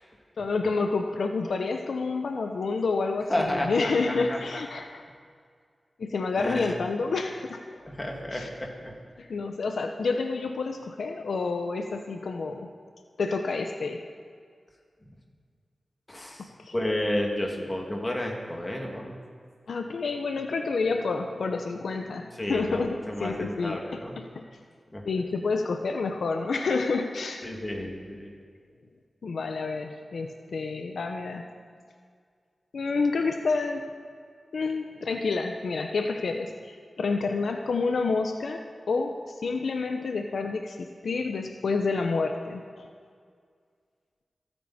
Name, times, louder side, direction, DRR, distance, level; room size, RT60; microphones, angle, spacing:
voice 1, 0.4-5.0 6.0-7.6 8.3-8.5 9.2-12.7 13.2-14.0 16.6-16.7 19.7-24.4 25.0-27.5 29.2-31.4 32.7-33.8 34.5-42.9, left 4 dB, 85° left, 4 dB, 0.8 m, -29 dB
voice 2, 3.3-3.7 4.1-4.6 6.3-6.8 7.9-8.9 16.1-16.5 16.7-19.2 22.4-24.2 24.9-25.0 27.4-28.3, left 1 dB, 20° left, 0 dB, 2.4 m, -31 dB
27.5 x 9.1 x 4.3 m, 2.1 s
wide cardioid pair, 105°, 0 cm